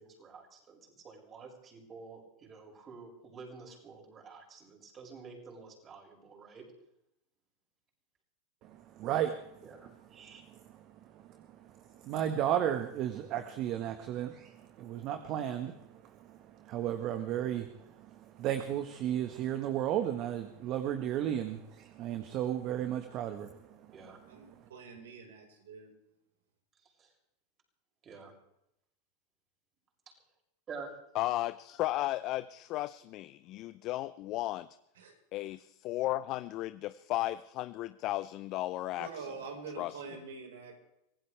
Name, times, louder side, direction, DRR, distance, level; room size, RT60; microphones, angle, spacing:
voice 1, 0.0-6.7 9.6-10.4 23.9-24.2 26.8-27.1 28.0-28.3 30.1-30.2 30.7-30.9, right 4 dB, 30° right, 0 dB, 7.0 m, -49 dB
voice 2, 9.0-9.5 12.0-15.8 16.3-16.4 16.6-18.1 18.4-23.5, right 10 dB, 50° right, 8 dB, 1.5 m, -33 dB
voice 3, 24.3-25.9 34.9-35.1 38.9-40.7, right 5 dB, 80° right, 2 dB, 5.0 m, -45 dB
voice 4, 31.1-34.7 35.3-39.3 39.8-40.0, left 16 dB, 50° left, 14 dB, 0.6 m, -35 dB
25.0 x 16.5 x 3.5 m, 0.80 s
hypercardioid pair, 100°, 0 cm